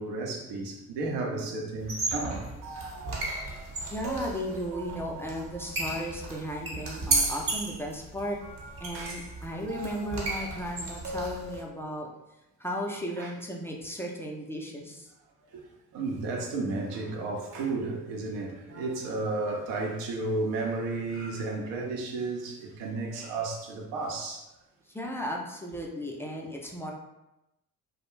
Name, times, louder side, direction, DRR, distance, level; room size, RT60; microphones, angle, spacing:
voice 1, 0.0-2.5 8.9-9.1 13.2-13.3 15.5-15.6 15.9-24.4, right 3 dB, 70° right, 0 dB, 0.7 m, -33 dB
voice 2, 1.3-1.6 3.8-8.4 8.8-12.1 12.6-15.1 24.9-26.9, equal, 5° left, -1 dB, 0.3 m, -35 dB
sound 1, 1.8-11.6, right 2 dB, 45° right, 1.0 m, -34 dB
2.4 x 2.1 x 3.0 m, 0.91 s
hypercardioid pair, 50°, 45 cm